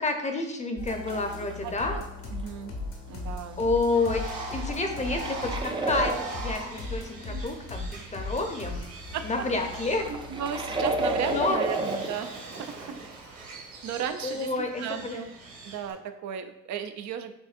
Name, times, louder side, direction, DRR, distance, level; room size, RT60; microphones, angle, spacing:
voice 1, 0.0-2.0 3.6-4.2 4.5-8.8 9.2-10.0 11.3-11.6 14.2-15.2, left 3 dB, 25° left, 4 dB, 0.6 m, -29 dB
sound 1, 0.8-11.5, left 2 dB, 75° left, 1.1 m, -38 dB
sound 2, 1.1-1.7 4.3-6.4 9.4-12.2 13.0-13.1, right 2 dB, 15° right, 0.5 m, -31 dB
voice 2, 1.6-2.0 2.3-2.7 3.1-3.6 7.3-7.4 9.1-9.2 10.1-13.0 13.8-14.5 14.8-15.3 15.6-17.3, right 8 dB, 70° right, 9 dB, 0.5 m, -35 dB
Bird, 3.9-15.9, right 3 dB, 50° right, 1.2 m, -42 dB
6.8 x 2.6 x 2.4 m, 0.87 s
cardioid pair, 90°, 30 cm